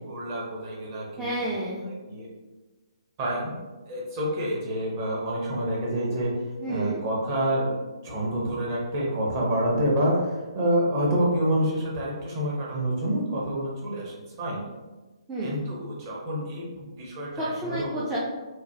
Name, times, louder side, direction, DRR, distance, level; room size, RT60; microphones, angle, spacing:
voice 1, 0.1-1.3 1.9-2.3 3.2-3.5 3.9-6.3 6.7-7.8 8.0-14.6 15.4-18.0, right 1 dB, 30° right, -4 dB, 0.8 m, -27 dB
voice 2, 1.2-1.8 6.6-7.0 15.3-15.6 17.4-18.2, right 1 dB, 10° right, -8 dB, 0.3 m, -30 dB
3.0 x 2.1 x 2.7 m, 1.2 s
figure-of-eight pair, 135°, 3 cm